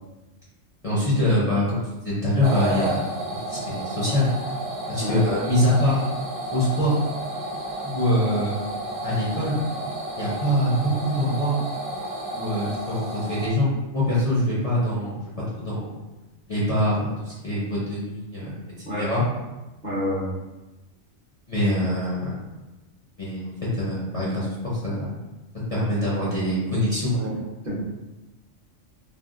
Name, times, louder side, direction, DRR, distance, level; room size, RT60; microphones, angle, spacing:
voice 1, 0.8-3.0 3.5-4.3 4.9-6.0 6.5-7.0 7.8-8.6 9.0-9.6 10.2-11.6 12.3-15.2 15.6-16.0 16.5-18.5 18.8-19.2 21.5-22.4 23.2-23.5 23.8-25.0 25.7-27.1, left 1 dB, 40° left, -9 dB, 0.6 m, -24 dB
sound 1, 2.4-13.5, right 1 dB, 75° right, 1.0 m, -31 dB
voice 2, 19.8-20.3 27.1-27.3 27.6-27.8, equal, 40° right, -8 dB, 0.8 m, -28 dB
3.4 x 2.1 x 2.4 m, 1.1 s
omnidirectional pair, 1.4 m